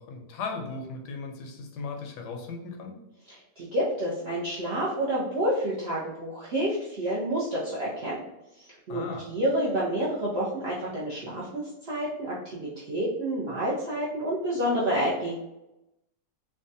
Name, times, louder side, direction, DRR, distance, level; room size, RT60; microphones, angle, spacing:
voice 1, 0.0-3.0 8.9-9.3, left 4 dB, 80° left, 2 dB, 1.2 m, -37 dB
voice 2, 3.3-8.2 8.6-9.0 9.3-15.3, right 1 dB, 75° right, -6 dB, 0.5 m, -29 dB
3.4 x 2.1 x 2.6 m, 0.90 s
omnidirectional pair, 1.8 m